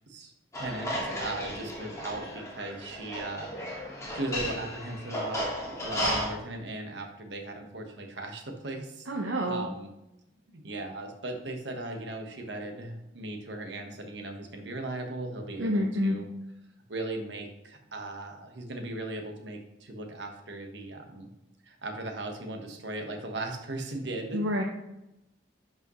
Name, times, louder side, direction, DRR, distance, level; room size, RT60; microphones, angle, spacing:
voice 1, 0.1-3.5 3.8-9.1 9.4-9.9 10.5-16.2 16.9-21.3 21.6-24.4, right 2 dB, 65° right, 3 dB, 1.3 m, -38 dB
sound 1, 0.5-6.3, equal, 15° left, 1.9 m, -34 dB
voice 2, 9.1-9.7 15.6-16.1 24.3-24.6, equal, 90° right, 1 dB, 0.8 m, -28 dB
11.0 x 5.3 x 3.1 m, 0.90 s
head